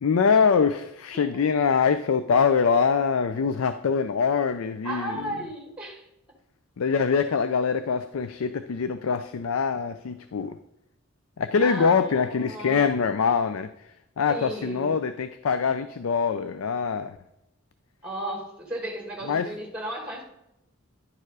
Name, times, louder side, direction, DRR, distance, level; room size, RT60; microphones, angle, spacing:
voice 1, 0.0-5.3 6.8-10.6 11.4-13.7 14.2-17.2 19.3-19.5, left 5 dB, 85° left, 11 dB, 0.4 m, -24 dB
voice 2, 4.8-6.0 11.6-12.8 14.3-15.0 18.0-20.2, right 1 dB, 5° right, 1 dB, 1.6 m, -35 dB
10.5 x 4.5 x 4.8 m, 0.85 s
head